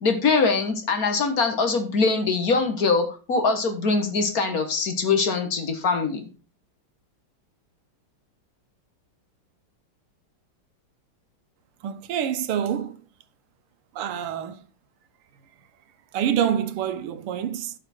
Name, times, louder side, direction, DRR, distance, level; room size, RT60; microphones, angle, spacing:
voice 1, 0.0-6.3, left 4 dB, 45° left, 1.7 m, -23 dB
voice 2, 11.8-13.0 14.0-14.6 16.1-17.7, right 9 dB, 80° right, 1.7 m, -26 dB
12.0 x 5.9 x 4.4 m
omnidirectional pair, 2.4 m